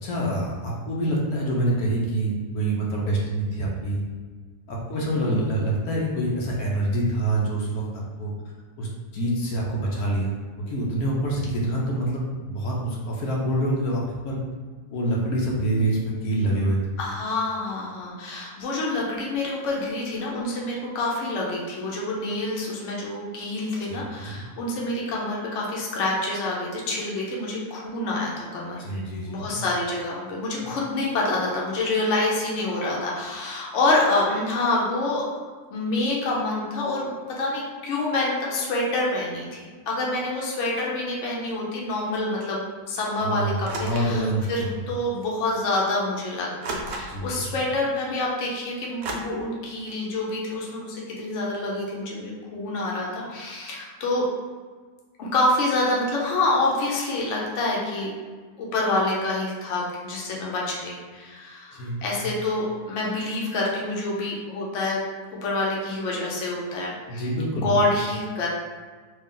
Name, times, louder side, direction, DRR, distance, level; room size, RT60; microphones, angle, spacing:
voice 1, 0.0-4.0 4.7-8.3 8.8-14.4 14.9-16.8 23.9-24.4 28.8-29.6 30.6-30.7 43.2-44.7 47.1-47.5 61.7-62.3 67.1-67.8, right 1 dB, 80° left, -3 dB, 1.2 m, -26 dB
voice 2, 4.9-5.4 17.0-29.0 29.3-35.2 35.7-54.2 55.2-58.1 58.6-65.0 65.4-67.2 67.5-68.5, left 2 dB, 60° left, -3 dB, 1.0 m, -27 dB
sound 1, 43.6-44.2 45.2-45.3 46.6-47.4 49.0-49.1, right 2 dB, 65° right, 0.6 m, -33 dB
3.2 x 2.4 x 3.6 m, 1.5 s
omnidirectional pair, 1.6 m